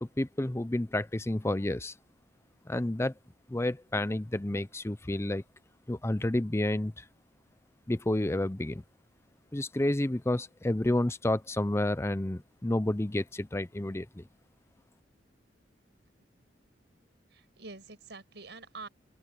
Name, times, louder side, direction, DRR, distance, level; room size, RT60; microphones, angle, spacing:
voice 1, 0.0-1.9 2.7-3.1 3.5-5.4 5.9-7.0 7.9-8.8 9.5-14.2, left 1 dB, 15° left, 0.6 m, -30 dB
voice 2, 17.3-18.9, right 3 dB, 70° right, 6.2 m, -47 dB
open air
head